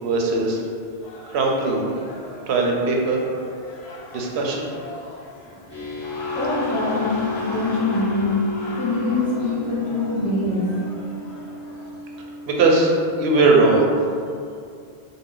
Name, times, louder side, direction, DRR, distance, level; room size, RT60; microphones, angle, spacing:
voice 1, 0.0-0.6 1.3-1.9 2.5-3.2 4.1-4.6 12.5-13.8, right 3 dB, 90° right, 0 dB, 0.9 m, -19 dB
sound 1, 1.0-12.3, left 1 dB, 85° left, 0.9 m, -38 dB
sound 2, 5.7-14.0, left 3 dB, 25° left, 1.1 m, -33 dB
voice 2, 6.3-8.4 8.8-10.7, left 2 dB, 10° left, -7 dB, 0.4 m, -24 dB
4.0 x 2.1 x 3.7 m, 2.4 s
omnidirectional pair, 1.0 m